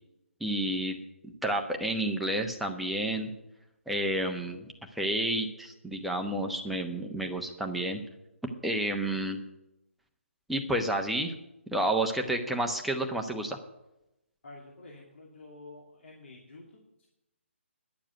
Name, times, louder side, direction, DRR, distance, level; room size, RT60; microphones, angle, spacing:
voice 1, 0.4-0.9 1.4-3.3 3.9-8.0 8.6-9.4 10.5-11.3 11.7-13.6, right 1 dB, ahead, 2 dB, 1.0 m, -30 dB
voice 2, 14.4-17.1, left 2 dB, 65° left, -1 dB, 2.7 m, -49 dB
11.0 x 7.3 x 9.1 m, 0.89 s
figure-of-eight pair, 145°, 7 cm